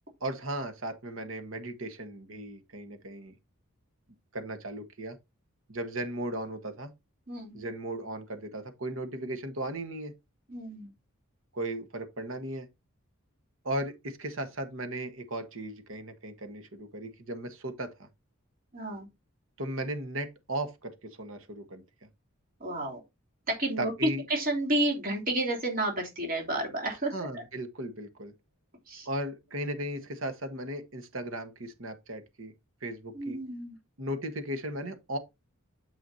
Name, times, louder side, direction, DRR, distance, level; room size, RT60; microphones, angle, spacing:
voice 1, 0.2-3.3 4.3-5.2 5.7-6.9 7.5-10.1 11.5-12.7 13.6-18.1 19.6-21.8 23.8-24.2 27.1-28.3 29.0-32.5 32.8-33.4 34.0-35.2, right 1 dB, 70° right, 1.4 m, -36 dB
voice 2, 7.3-7.6 10.5-10.9 18.7-19.1 22.6-23.0 23.5-23.9 24.3-27.4 28.9-29.1 33.1-33.8, right 1 dB, 45° right, 3.1 m, -31 dB
9.2 x 7.1 x 2.7 m
head